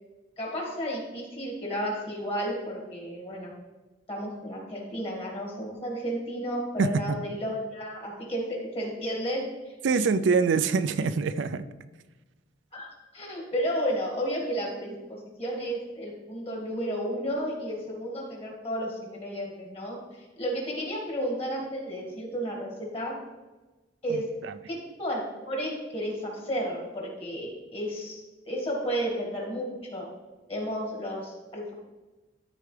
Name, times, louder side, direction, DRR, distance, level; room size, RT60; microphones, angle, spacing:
voice 1, 0.4-3.5 4.1-9.4 12.7-23.1 24.0-24.2 24.7-30.0 30.5-31.7, equal, 30° left, -2 dB, 2.1 m, -32 dB
voice 2, 6.8-7.2 9.8-11.6, right 4 dB, 80° right, 12 dB, 0.4 m, -24 dB
12.5 x 4.5 x 3.3 m, 1.2 s
head